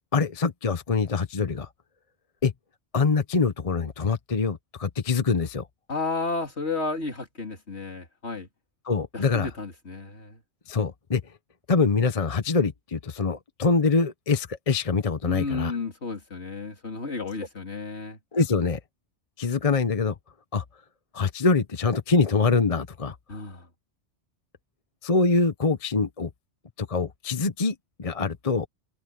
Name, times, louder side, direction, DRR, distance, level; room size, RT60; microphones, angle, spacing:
voice 1, 0.1-1.7 2.4-2.5 2.9-5.7 8.9-9.5 10.7-11.2 11.7-15.7 18.3-18.8 19.4-20.1 20.5-20.6 21.1-23.1 25.0-26.3 26.8-28.7, left 4 dB, 30° left, 0.9 m, -24 dB
voice 2, 5.9-8.5 9.1-10.4 15.3-18.2 23.3-23.7, left 3 dB, 60° left, 3.3 m, -32 dB
omnidirectional pair, 1.2 m